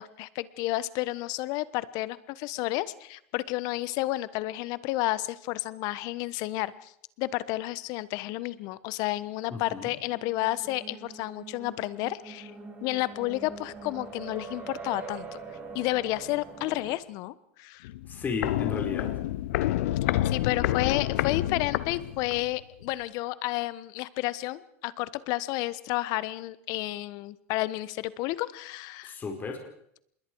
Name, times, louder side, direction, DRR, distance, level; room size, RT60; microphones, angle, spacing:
voice 1, 0.0-6.9 7.2-12.5 12.8-15.4 15.7-17.9 20.3-29.2, left 18 dB, 55° left, 17 dB, 1.2 m, -31 dB
voice 2, 9.5-9.9 18.1-19.1 29.0-29.6, left 5 dB, 25° left, 3 dB, 4.6 m, -34 dB
sound 1, 9.8-17.0, right 4 dB, 25° right, 5.4 m, -43 dB
Walk footsteps, 17.8-22.5 22.8-22.9, left 14 dB, 75° left, 0.9 m, -29 dB
26.5 x 21.5 x 4.7 m, 0.71 s
supercardioid pair, 120°, 8 cm